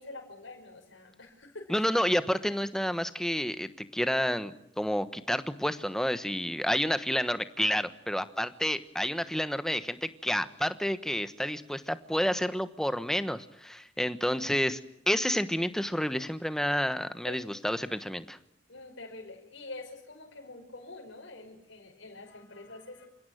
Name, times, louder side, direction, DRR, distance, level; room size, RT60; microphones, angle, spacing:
voice 1, 0.0-1.8 17.2-17.5 18.7-23.1, left 2 dB, 70° left, 0 dB, 5.7 m, -46 dB
voice 2, 1.7-14.8 15.1-18.4, equal, 5° left, 11 dB, 1.2 m, -30 dB
28.5 x 16.5 x 9.2 m, 0.79 s
head